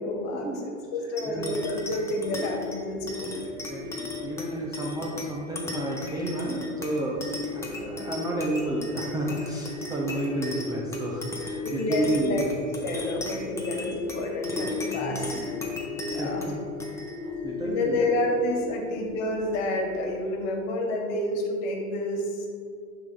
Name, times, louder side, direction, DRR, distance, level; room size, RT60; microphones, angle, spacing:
voice 1, 0.0-3.4 11.6-12.4 12.8-15.6 16.1-16.4 17.6-22.5, left 1 dB, 55° left, 2 dB, 1.5 m, -29 dB
sound 1, 1.2-20.0, left 3 dB, 5° left, 0.9 m, -35 dB
voice 2, 1.3-1.8 3.7-7.2 7.5-12.4 12.8-12.9 14.9-15.3 16.1-16.6 17.2-18.0 18.7-18.8, right 2 dB, 10° right, -3 dB, 0.4 m, -31 dB
10.0 x 3.8 x 3.4 m, 2.3 s
hypercardioid pair, 110°, 42 cm